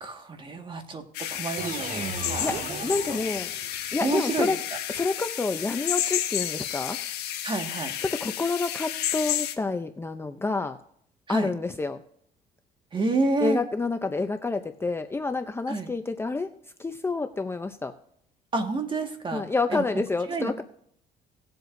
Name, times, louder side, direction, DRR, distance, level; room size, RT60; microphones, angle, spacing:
voice 1, 0.0-2.8 3.1-3.2 4.0-4.8 7.4-7.9 11.3-11.5 12.9-13.6 15.7-15.9 18.5-19.8 20.3-20.6, right 3 dB, 30° right, 5 dB, 1.7 m, -30 dB
sound 1, 1.1-9.5, left 11 dB, 80° left, 1.4 m, -31 dB
sound 2, 1.6-3.9, right 4 dB, 50° right, 2.1 m, -36 dB
voice 2, 2.4-3.5 3.9-4.6 4.9-7.0 8.1-10.8 11.3-12.0 13.4-16.5 16.8-17.9 19.3-20.6, left 3 dB, 15° left, 7 dB, 0.6 m, -28 dB
19.0 x 7.8 x 2.6 m, 0.68 s
cardioid pair, 110°, 17 cm